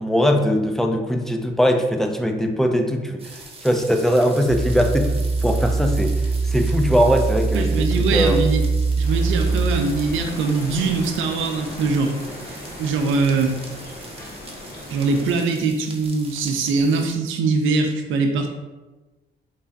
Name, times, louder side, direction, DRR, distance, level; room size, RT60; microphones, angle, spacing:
voice 1, 0.0-5.1 5.4-6.2 6.4-8.4, equal, ahead, 4 dB, 0.4 m, -20 dB
sound 1, 3.2-17.1, right 3 dB, 30° right, 0.7 m, -42 dB
sound 2, 4.5-9.8, right 4 dB, 90° left, 1.2 m, -22 dB
voice 2, 7.5-8.6 9.0-12.1 12.5-13.6 14.9-18.5, right 4 dB, 80° right, 4 dB, 0.6 m, -22 dB
sound 3, 9.0-15.3, left 1 dB, 50° left, 1.1 m, -37 dB
3.3 x 2.3 x 3.9 m, 1.2 s
cardioid pair, 90°, 20 cm